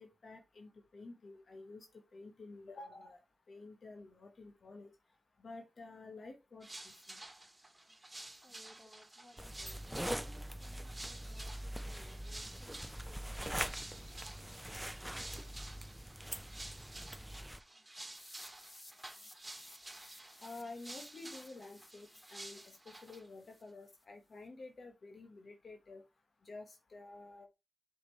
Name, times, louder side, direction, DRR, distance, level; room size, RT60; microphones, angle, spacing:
voice 1, 0.0-3.2 3.5-4.9 5.4-7.2 20.4-26.0 26.4-27.5, left 3 dB, 70° left, 1.2 m, -51 dB
sound 1, 6.6-23.3, right 2 dB, 25° right, 2.1 m, -52 dB
voice 2, 8.1-13.8, equal, 20° left, 3.2 m, -62 dB
sound 2, 9.4-17.6, equal, 5° right, 0.5 m, -43 dB
sound 3, 18.1-24.0, left 1 dB, 40° left, 4.3 m, -59 dB
7.6 x 5.2 x 3.1 m
cardioid pair, 50°, 0 cm